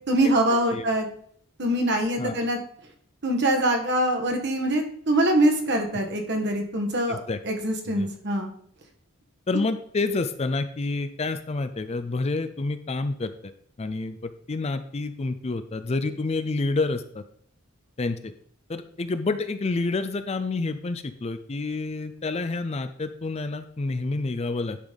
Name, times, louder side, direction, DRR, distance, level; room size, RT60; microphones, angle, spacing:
voice 1, 0.1-1.1 1.6-2.6 3.2-8.5, right 1 dB, 50° right, 4 dB, 1.4 m, -24 dB
voice 2, 7.1-7.4 7.9-8.1 9.5-13.5 13.8-17.2 18.0-18.3 18.7-24.8, left 3 dB, 30° left, 10 dB, 0.4 m, -28 dB
10.5 x 4.1 x 5.2 m, 0.63 s
head